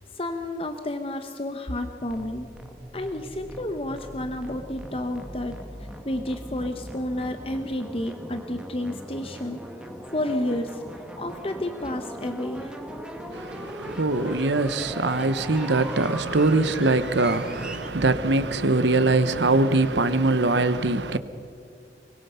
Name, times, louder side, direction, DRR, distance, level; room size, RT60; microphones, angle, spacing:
voice 1, 0.1-2.5 2.9-9.6 10.1-10.8 11.2-12.7, left 1 dB, 30° left, 0.9 m, -31 dB
sound 1, 2.0-17.9, equal, 5° right, 1.4 m, -39 dB
voice 2, 13.3-21.2, right 2 dB, 90° right, 1.1 m, -22 dB
23.5 x 21.0 x 5.7 m
head